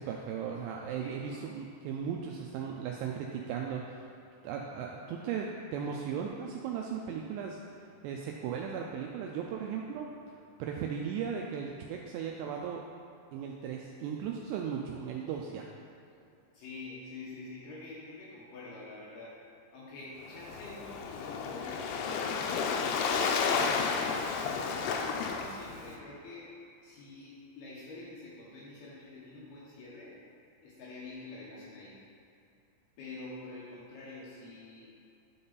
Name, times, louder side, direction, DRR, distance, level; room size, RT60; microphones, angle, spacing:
voice 1, 0.0-4.1 4.4-7.6 8.0-12.8 13.3-15.7, right 7 dB, 85° right, 0 dB, 2.5 m, -37 dB
voice 2, 1.0-1.5 16.5-19.4 19.7-22.1 22.5-24.0 25.2-26.6 26.8-30.2 30.6-32.0 33.0-34.9, left 2 dB, 70° left, -7 dB, 2.7 m, -47 dB
Waves surf, 20.3-26.0, left 5 dB, 90° left, 2.2 m, -32 dB
10.5 x 3.9 x 4.0 m, 2.6 s
omnidirectional pair, 5.2 m